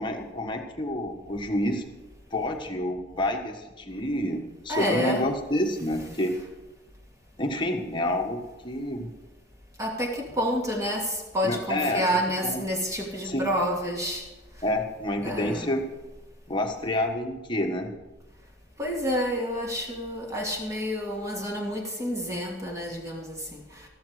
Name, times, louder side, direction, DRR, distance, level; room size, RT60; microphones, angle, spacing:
voice 1, 0.0-1.8 2.3-6.3 7.4-9.1 11.4-12.0 12.4-12.6 13.2-13.4 14.6-15.8 16.5-17.9, left 1 dB, 25° left, 2 dB, 1.5 m, -28 dB
voice 2, 4.7-5.3 9.8-14.2 15.2-15.7 18.8-23.9, equal, 15° right, -1 dB, 2.5 m, -29 dB
13.5 x 12.0 x 5.0 m, 1.1 s
head